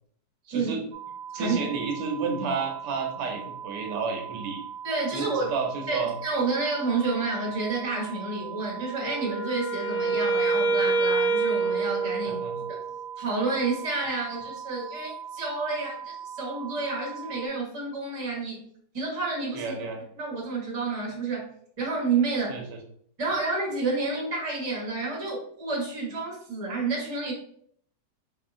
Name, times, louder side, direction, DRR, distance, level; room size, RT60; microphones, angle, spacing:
voice 1, 0.5-0.8 1.3-4.6 5.1-6.1 12.3-12.5 19.5-20.0 22.5-22.8, right 4 dB, 85° right, 2 dB, 1.3 m, -31 dB
sound 1, 0.9-17.5, right 8 dB, 65° right, 1.0 m, -40 dB
voice 2, 4.8-5.5 5.9-12.4 12.7-12.8 13.2-18.6 18.9-19.9 20.2-21.5 21.8-22.6 23.2-27.3, right 3 dB, 25° right, -3 dB, 1.0 m, -30 dB
Wind instrument woodwind instrument, 9.0-12.9, right 4 dB, 75° left, 1.1 m, -26 dB
4.6 x 2.7 x 2.5 m, 0.63 s
omnidirectional pair, 1.8 m